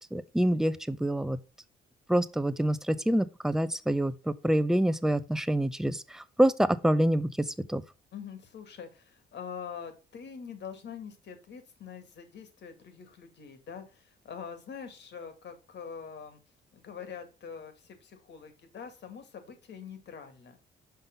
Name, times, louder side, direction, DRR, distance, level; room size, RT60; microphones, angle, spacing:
voice 1, 0.1-1.4 2.1-7.8, right 1 dB, ahead, 0.6 m, -26 dB
voice 2, 8.1-16.4 16.7-20.6, left 7 dB, 60° left, 2.1 m, -44 dB
5.8 x 5.4 x 5.2 m
cardioid pair, 90°, 20 cm